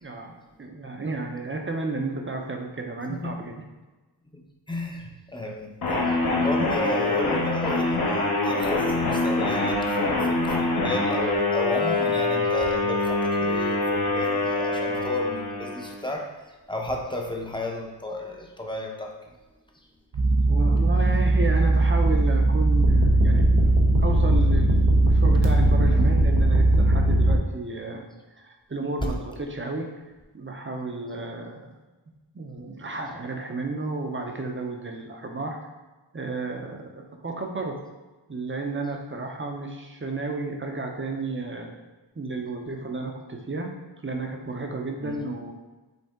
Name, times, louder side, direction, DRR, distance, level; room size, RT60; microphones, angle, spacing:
voice 1, 0.0-3.6 20.5-23.4 24.0-28.1 28.3-29.9 30.3-31.6 32.3-35.7 36.1-37.8 38.3-41.8 42.2-43.7 44.0-45.5, right 3 dB, 30° right, 2 dB, 0.7 m, -32 dB
voice 2, 4.3-19.2 45.0-45.2, left 1 dB, 10° left, 0 dB, 0.7 m, -33 dB
sound 1, 5.8-16.1, left 2 dB, 55° left, 0.9 m, -25 dB
sound 2, 20.1-27.4, right 2 dB, 75° right, 0.8 m, -19 dB
5.3 x 2.7 x 3.6 m, 1.2 s
wide cardioid pair, 65°, 43 cm